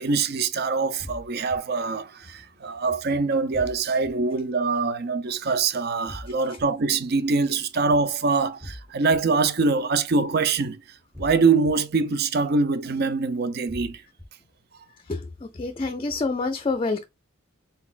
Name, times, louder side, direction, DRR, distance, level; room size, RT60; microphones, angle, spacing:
voice 1, 0.0-10.8 11.2-14.0, right 4 dB, 55° right, 0.5 m, -24 dB
sound 1, 1.0-1.6 3.5-4.1 6.1-6.6 8.6-9.2 11.1-11.7 13.7-14.3, left 1 dB, 15° right, 0.9 m, -40 dB
voice 2, 15.1-17.0, left 3 dB, 30° left, 0.4 m, -27 dB
4.1 x 4.0 x 2.4 m
head